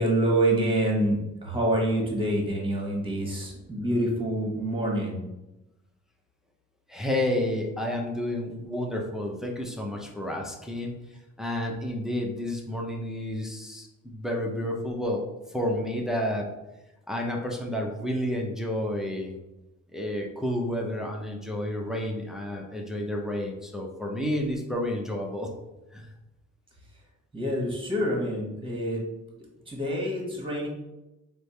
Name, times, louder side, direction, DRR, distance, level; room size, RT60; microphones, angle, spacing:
voice 1, 0.0-5.2 27.3-29.0 29.7-30.7, right 1 dB, 15° right, -1 dB, 1.1 m, -26 dB
voice 2, 6.9-10.9 11.4-15.3 15.5-16.6 17.1-19.4 19.9-25.5 25.9-26.1, left 1 dB, ahead, 0 dB, 0.6 m, -30 dB
3.3 x 2.1 x 4.2 m, 0.98 s
cardioid pair, 90°, 30 cm